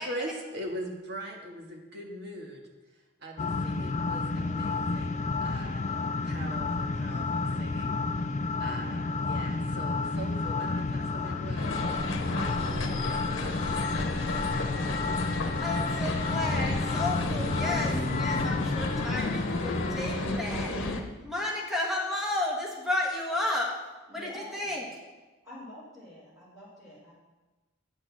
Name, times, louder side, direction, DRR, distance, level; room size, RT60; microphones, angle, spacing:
voice 1, 0.0-2.6 3.2-8.3 8.6-12.3 12.7-14.3 14.5-15.0, right 1 dB, 55° right, 1 dB, 1.7 m, -42 dB
sound 1, 3.4-20.3, left 3 dB, 35° left, 0.3 m, -31 dB
sound 2, 11.6-21.0, left 2 dB, 70° left, 1.0 m, -33 dB
voice 2, 15.6-23.7 24.1-24.8, left 1 dB, ahead, -3 dB, 1.5 m, -33 dB
voice 3, 24.1-24.8 25.4-27.1, left 1 dB, 15° right, -12 dB, 3.8 m, -46 dB
9.0 x 6.3 x 7.3 m, 1.2 s
head